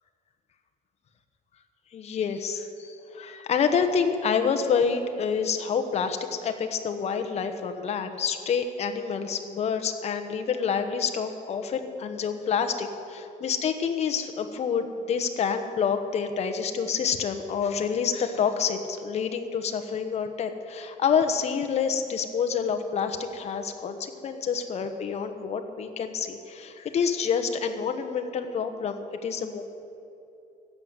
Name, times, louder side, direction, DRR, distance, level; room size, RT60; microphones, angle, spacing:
voice 1, 1.9-29.6, left 6 dB, 45° left, 7 dB, 1.1 m, -28 dB
13.5 x 8.1 x 9.4 m, 2.8 s
cardioid pair, 165°, 16 cm